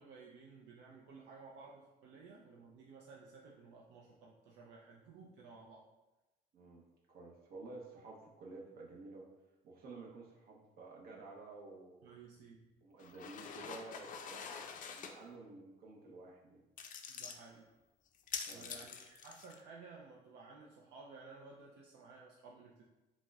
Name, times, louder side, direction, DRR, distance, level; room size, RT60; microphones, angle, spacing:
voice 1, 0.0-5.8 12.0-12.7 17.1-17.7 18.5-22.8, right 4 dB, 80° right, -3 dB, 0.5 m, -55 dB
voice 2, 6.5-9.3 9.6-12.2 12.8-16.7 18.4-18.8, right 3 dB, 60° right, -2 dB, 0.8 m, -52 dB
sound 1, 13.0-15.1 16.8-17.4 18.1-19.6, left 6 dB, 50° left, 0.4 m, -46 dB
5.8 x 2.1 x 2.3 m, 1.1 s
cardioid pair, 110°, 17 cm